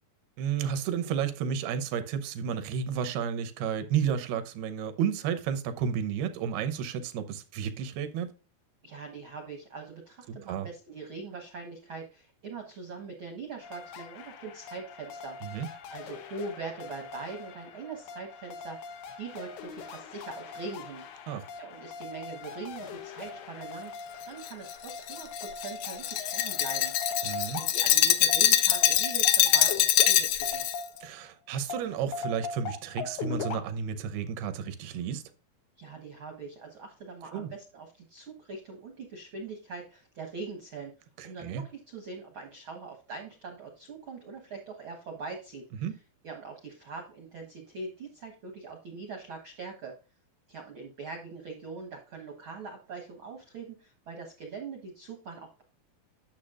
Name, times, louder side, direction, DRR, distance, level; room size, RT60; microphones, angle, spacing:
voice 1, 0.4-8.3 10.3-10.7 15.4-15.7 21.3-21.4 27.2-27.6 31.0-35.2 37.3-37.5 41.2-41.6 45.8-46.0, right 7 dB, 90° right, 2.9 m, -32 dB
voice 2, 8.8-15.6 15.9-21.0 21.5-24.0 24.2-26.9 27.6-30.6 35.8-40.9 41.2-45.7 46.2-50.0 50.5-55.6, right 4 dB, 65° right, 1.2 m, -42 dB
sound 1, 13.6-31.2 31.7-33.6, left 5 dB, 90° left, 3.1 m, -41 dB
Glass, 24.4-30.8, left 12 dB, 75° left, 1.9 m, -24 dB
10.5 x 6.9 x 2.5 m
omnidirectional pair, 4.4 m